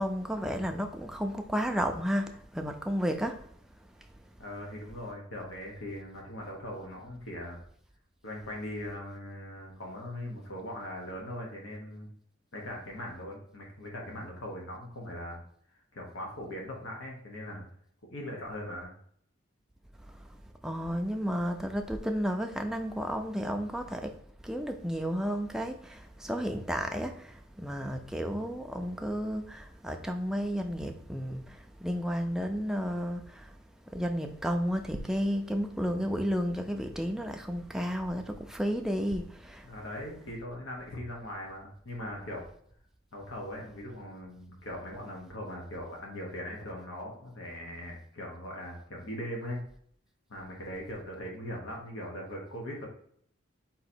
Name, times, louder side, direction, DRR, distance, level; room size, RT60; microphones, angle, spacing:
voice 1, 0.0-3.4 20.6-24.1 24.4-33.5 33.9-39.7, equal, 5° right, 0.3 m, -32 dB
voice 2, 4.4-7.6 8.2-12.1 12.5-15.4 15.9-17.6 18.1-18.9 39.6-42.4 43.1-49.6 50.3-52.9, left 1 dB, 85° left, 1.1 m, -40 dB
3.9 x 2.8 x 4.3 m
head